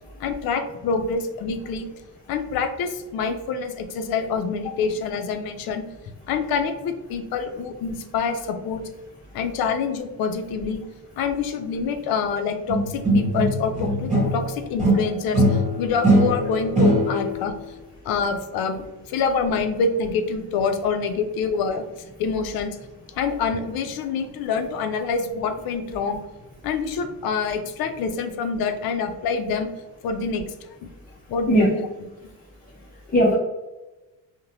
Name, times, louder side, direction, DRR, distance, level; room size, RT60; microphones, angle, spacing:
voice 1, 0.2-1.9 2.3-5.8 6.3-8.8 9.3-10.8 11.2-17.5 18.0-21.8 22.2-22.8 23.2-26.2 26.6-29.7 30.0-30.9 31.3-31.9 32.2-32.3, left 5 dB, 75° left, 7 dB, 0.5 m, -26 dB
sound 1, 12.7-14.5 14.8-17.4, right 1 dB, 20° right, 1.1 m, -20 dB
voice 2, 32.9-33.3, equal, 25° left, -4 dB, 0.5 m, -20 dB
2.8 x 2.1 x 2.7 m, 1.1 s
cardioid pair, 115°, 36 cm